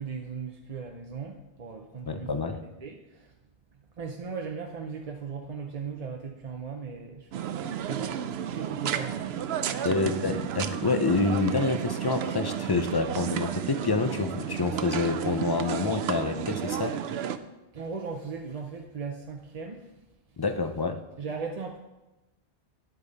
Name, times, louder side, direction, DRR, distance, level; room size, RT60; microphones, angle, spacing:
voice 1, 0.0-2.3 2.6-3.3 4.0-9.4 9.7-10.3 17.7-19.8 21.2-21.8, right 5 dB, 40° right, 2 dB, 0.6 m, -38 dB
voice 2, 2.0-2.6 9.8-17.0 20.4-21.0, left 4 dB, 30° left, 8 dB, 0.4 m, -27 dB
sound 1, 7.3-17.4, right 9 dB, 70° right, 0.8 m, -32 dB
10.5 x 8.4 x 4.1 m, 1.0 s
omnidirectional pair, 1.1 m